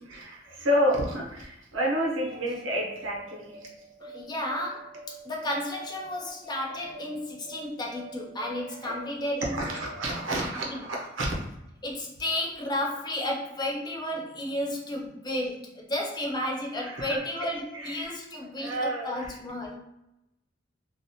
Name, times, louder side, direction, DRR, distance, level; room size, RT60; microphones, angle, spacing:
voice 1, 0.0-3.7 8.8-9.0 9.5-11.3 16.8-17.5 17.7-18.2 18.6-19.3, equal, 80° right, -2 dB, 0.8 m, -30 dB
sound 1, 2.2-11.2, right 2 dB, 35° right, 1.0 m, -46 dB
voice 2, 4.0-9.6 10.3-10.8 11.8-19.8, left 1 dB, 20° left, 0 dB, 0.4 m, -33 dB
2.4 x 2.1 x 2.8 m, 0.86 s
head